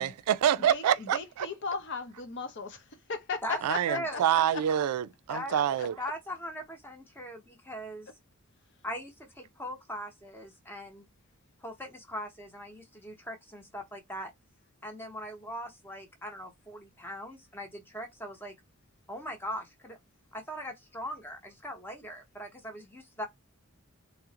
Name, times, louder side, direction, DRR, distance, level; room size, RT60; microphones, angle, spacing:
voice 1, 0.0-1.5 3.6-5.9, right 10 dB, 85° right, 0.3 m, -27 dB
voice 2, 0.6-4.7 5.3-6.1, left 4 dB, 50° left, 0.6 m, -38 dB
voice 3, 3.9-4.2 5.3-5.5 6.0-8.1 8.8-11.1 11.6-14.3 14.8-18.5 19.1-20.0 20.3-23.3, equal, 10° left, 0.8 m, -40 dB
3.6 x 2.0 x 2.8 m
head